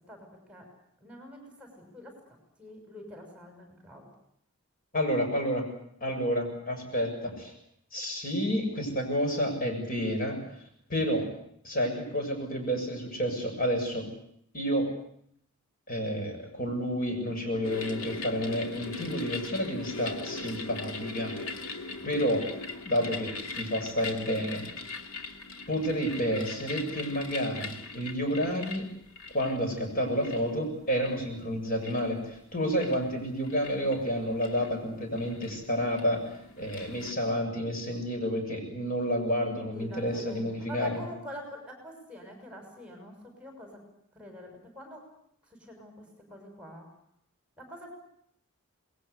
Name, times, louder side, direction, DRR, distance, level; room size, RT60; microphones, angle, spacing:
voice 1, 0.1-0.6 1.0-2.1 2.6-4.0 39.7-43.8 44.1-45.0 45.6-46.9 47.6-47.9, equal, 5° right, 3 dB, 6.4 m, -45 dB
voice 2, 4.9-5.7 6.0-7.5 7.9-10.4 10.9-11.3 11.6-14.1 14.5-14.9 15.9-21.3 22.0-22.4 22.8-24.9 25.7-28.8 29.3-36.2 36.6-41.0, equal, 40° left, 3 dB, 7.0 m, -30 dB
sound 1, 17.6-37.1, left 3 dB, 70° left, 2.5 m, -41 dB
27.5 x 20.5 x 8.3 m, 0.72 s
head